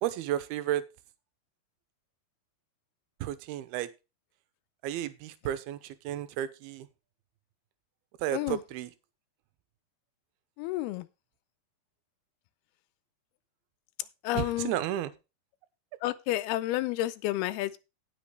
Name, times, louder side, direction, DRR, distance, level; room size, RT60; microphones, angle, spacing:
voice 1, 0.0-0.8 3.2-3.9 4.8-6.9 8.2-8.9 14.3-15.1, right 12 dB, 85° right, 2.8 m, -32 dB
voice 2, 10.6-11.0 14.2-14.7 16.0-17.8, left 15 dB, 90° left, 2.6 m, -30 dB
17.5 x 6.0 x 3.2 m
omnidirectional pair, 4.4 m